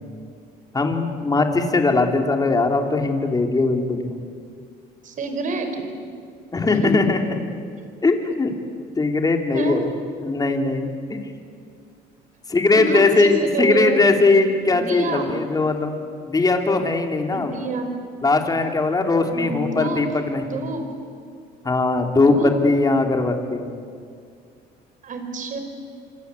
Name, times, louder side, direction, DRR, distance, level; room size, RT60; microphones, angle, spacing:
voice 1, 0.7-4.1 6.5-7.2 8.0-8.5 9.0-9.9 10.2-10.9 12.5-16.0 16.2-17.5 18.2-20.6 21.6-23.7, left 3 dB, 20° left, 4 dB, 3.2 m, -20 dB
voice 2, 5.0-5.9 6.8-6.9 9.5-9.8 12.7-14.0 14.7-15.3 17.3-17.9 19.3-20.0 20.5-20.8 22.2-22.5 25.0-25.6, right 3 dB, 50° right, 6 dB, 4.8 m, -27 dB
26.5 x 25.5 x 8.4 m, 2.2 s
cardioid pair, 110°, 17 cm